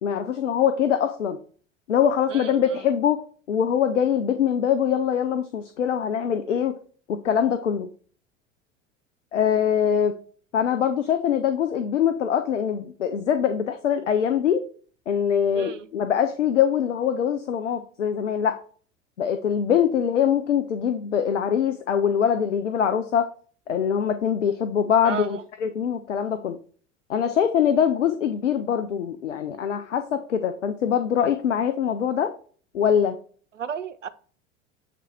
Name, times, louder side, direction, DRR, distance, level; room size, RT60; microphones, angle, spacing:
voice 1, 0.0-1.4 1.9-3.2 3.5-6.7 7.1-7.9 9.3-10.2 10.5-14.6 15.1-18.6 19.2-23.3 23.7-26.6 27.1-32.3 32.7-33.2, left 8 dB, 75° left, 9 dB, 0.6 m, -23 dB
voice 2, 2.3-2.8 15.5-15.9 25.0-25.4 33.6-34.1, right 8 dB, 85° right, 12 dB, 0.6 m, -33 dB
7.5 x 3.4 x 4.2 m, 0.43 s
figure-of-eight pair, 75°, 37 cm